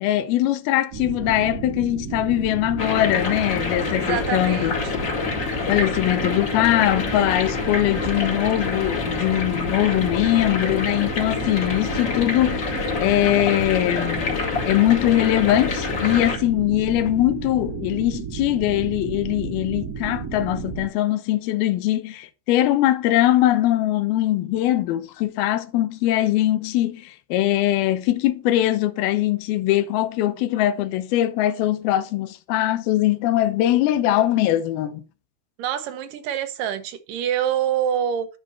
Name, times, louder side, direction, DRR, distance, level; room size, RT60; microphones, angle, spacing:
voice 1, 0.0-4.7 5.7-35.0, left 14 dB, 80° left, 2.6 m, -21 dB
sound 1, 0.9-20.9, right 6 dB, 40° right, 1.4 m, -32 dB
sound 2, 2.8-16.4, left 5 dB, 35° left, 2.4 m, -27 dB
voice 2, 4.0-4.9 35.6-38.3, right 9 dB, 70° right, 2.4 m, -26 dB
11.0 x 5.1 x 5.7 m
omnidirectional pair, 4.4 m